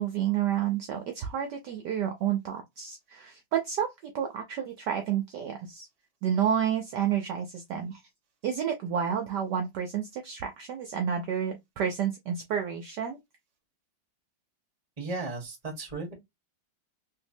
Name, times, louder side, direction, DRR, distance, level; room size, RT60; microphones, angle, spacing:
voice 1, 0.0-5.9 6.2-8.0 8.4-13.2, right 9 dB, 70° right, 1.1 m, -30 dB
voice 2, 15.0-16.1, right 3 dB, 20° right, 1.2 m, -35 dB
3.3 x 3.0 x 2.6 m
omnidirectional pair, 2.2 m